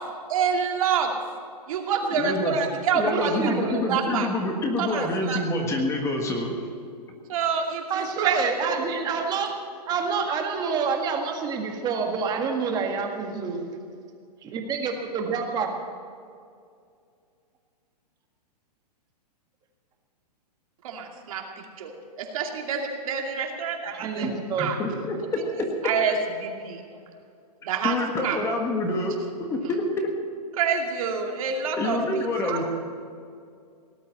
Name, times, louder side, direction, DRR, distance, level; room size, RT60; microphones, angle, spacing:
voice 1, 0.3-1.1 1.7-3.5 3.9-4.3 4.8-5.4 7.3-8.8 20.8-24.3 24.6-24.8 25.8-26.8 27.6-28.0 28.2-28.4 30.6-32.0 32.4-32.6, right 6 dB, 55° right, 2 dB, 2.5 m, -27 dB
voice 2, 2.0-2.6 2.9-6.6 24.2-25.2 27.8-30.1 31.8-32.7, left 2 dB, 15° left, 2 dB, 1.5 m, -27 dB
voice 3, 3.1-3.8 7.9-9.5 9.9-13.6 14.4-15.7 23.9-24.7, right 5 dB, 20° right, 3 dB, 1.8 m, -27 dB
18.0 x 8.5 x 8.3 m, 2.3 s
hypercardioid pair, 155°, 21 cm